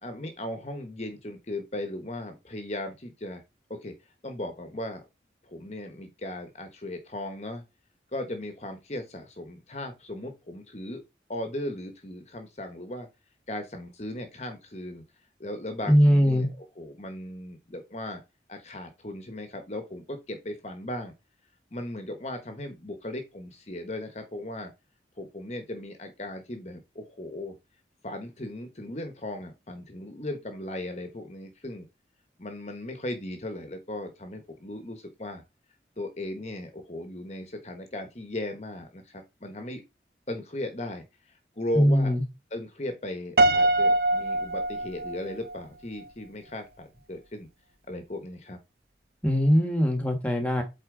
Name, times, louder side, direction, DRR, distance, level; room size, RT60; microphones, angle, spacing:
voice 1, 0.0-3.4 3.7-3.9 4.2-5.0 5.4-7.6 8.1-11.0 11.3-13.1 13.5-15.0 15.4-16.5 16.8-18.2 18.5-21.1 21.7-24.7 25.2-27.5 28.0-31.9 32.4-35.4 36.0-39.8 40.3-42.1 42.5-47.5 47.9-48.6, left 1 dB, 40° left, 1.1 m, -37 dB
voice 2, 15.9-16.5 41.7-42.2 49.2-50.6, equal, 10° left, 1.5 m, -21 dB
Piano, 43.4-45.6, right 2 dB, 60° right, 0.7 m, -23 dB
8.1 x 4.3 x 3.8 m
head